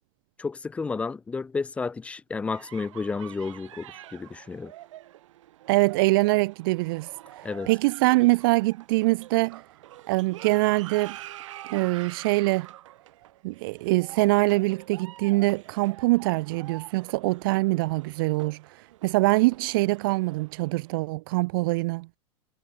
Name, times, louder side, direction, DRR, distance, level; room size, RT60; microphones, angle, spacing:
voice 1, 0.4-4.7 7.4-7.7, left 4 dB, 5° left, 0.9 m, -32 dB
sound 1, 2.5-21.0, right 14 dB, 70° right, 5.9 m, -46 dB
voice 2, 5.7-7.1 7.7-9.6 10.1-11.2 11.7-12.7 13.4-22.1, right 23 dB, 40° right, 0.7 m, -24 dB
supercardioid pair, 170°, 17 cm